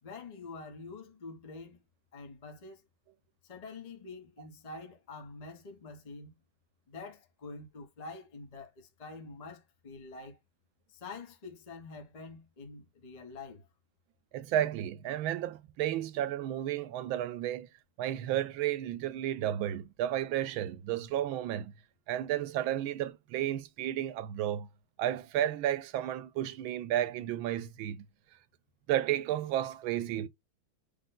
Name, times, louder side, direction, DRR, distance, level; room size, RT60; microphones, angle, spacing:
voice 1, 0.0-1.8 2.1-2.8 3.4-6.4 6.9-10.4 10.9-13.7, left 3 dB, 35° left, 0.7 m, -46 dB
voice 2, 14.3-17.7 18.0-21.7 22.1-24.7 25.0-28.0 28.9-30.3, right 12 dB, 90° right, 1.4 m, -32 dB
5.0 x 2.2 x 3.7 m
omnidirectional pair, 2.2 m